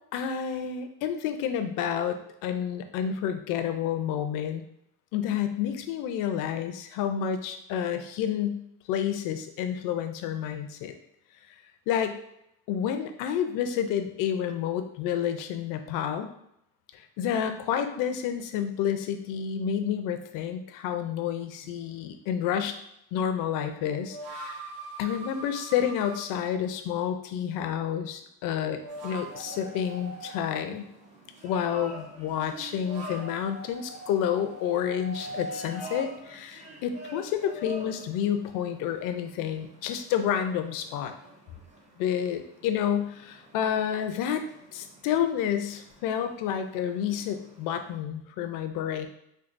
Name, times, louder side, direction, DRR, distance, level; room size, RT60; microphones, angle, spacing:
voice 1, 0.1-4.6 5.1-8.6 8.9-10.9 11.9-12.2 12.7-16.3 16.9-22.8 23.1-24.7 25.0-30.9 31.4-41.1 42.0-44.5 44.7-49.1, left 9 dB, 55° left, 7 dB, 0.5 m, -29 dB
sound 1, 21.6-21.7 23.7-26.2 28.6-30.4 32.5-36.1, right 2 dB, 60° right, 0.7 m, -41 dB
sound 2, 28.9-48.0, right 1 dB, 20° right, 0.5 m, -48 dB
4.6 x 2.3 x 2.5 m, 0.77 s
cardioid pair, 140°, 40 cm